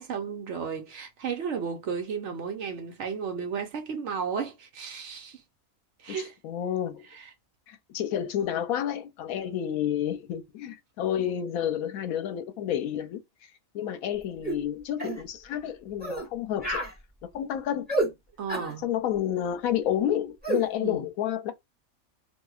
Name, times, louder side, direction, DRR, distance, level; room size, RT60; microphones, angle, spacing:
voice 1, 0.0-5.4 6.0-6.4 7.1-7.2 18.4-18.8 20.8-21.1, right 6 dB, 60° right, 0.9 m, -33 dB
voice 2, 6.4-7.0 7.7-13.2 13.7-16.8 17.3-18.0 18.8-21.5, left 10 dB, 85° left, 1.0 m, -30 dB
sound 1, 14.4-14.6 15.0-15.2 16.0-16.3 16.6-16.9 17.9-18.1 18.5-18.7 20.4-20.6, right 2 dB, 5° right, 1.0 m, -29 dB
2.8 x 2.6 x 2.3 m
omnidirectional pair, 1.5 m